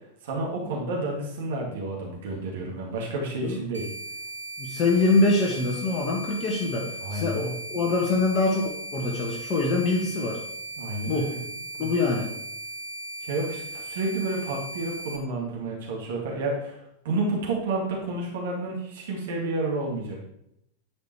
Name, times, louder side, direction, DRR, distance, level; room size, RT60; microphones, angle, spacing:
voice 1, 0.2-3.9 7.0-7.5 10.8-11.4 11.8-11.9 13.2-20.2, right 2 dB, 55° right, -2 dB, 2.4 m, -30 dB
sound 1, 3.7-15.2, right 1 dB, 85° right, 0.9 m, -38 dB
voice 2, 4.6-10.4 11.1-11.3 11.8-12.3, left 3 dB, 30° left, -1 dB, 1.5 m, -24 dB
10.0 x 5.2 x 4.7 m, 0.78 s
figure-of-eight pair, 90°, 0 cm